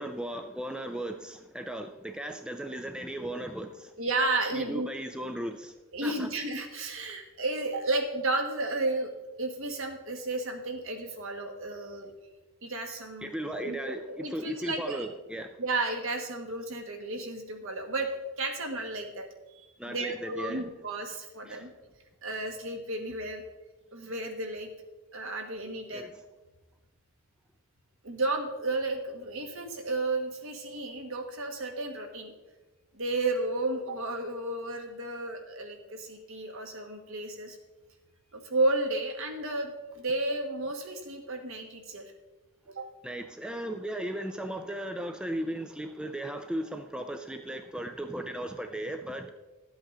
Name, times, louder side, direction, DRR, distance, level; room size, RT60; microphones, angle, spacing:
voice 1, 0.0-3.9 4.5-5.7 6.0-6.3 13.2-15.6 19.8-20.7 21.4-21.7 25.9-26.1 43.0-49.3, right 1 dB, 5° right, 6 dB, 0.4 m, -36 dB
voice 2, 4.0-4.9 5.9-9.1 9.4-12.1 12.6-13.8 14.2-15.1 15.6-18.1 18.4-21.7 22.2-23.4 23.9-24.7 25.1-26.1 28.0-32.3 32.9-37.6 38.3-42.1 42.7-42.9, right 2 dB, 60° right, 4 dB, 1.5 m, -32 dB
12.0 x 8.0 x 3.8 m, 1.1 s
head